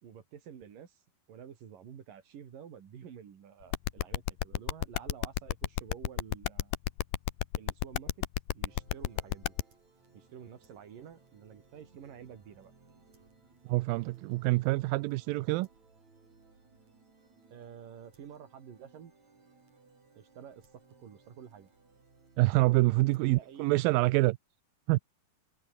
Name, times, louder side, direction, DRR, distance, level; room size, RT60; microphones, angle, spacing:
voice 1, 0.0-1.0 1.3-6.8 7.6-8.3 8.5-9.5 10.1-12.7 17.5-19.1 20.2-21.7 23.1-23.9, right 8 dB, 70° right, 4.3 m, -50 dB
sound 1, 3.7-9.6, left 15 dB, 80° left, 2.7 m, -31 dB
sound 2, 8.7-24.0, right 4 dB, 50° right, 7.2 m, -62 dB
voice 2, 13.7-15.7 22.4-24.4 24.9-25.0, right 21 dB, 85° right, 2.4 m, -26 dB
omnidirectional pair, 4.0 m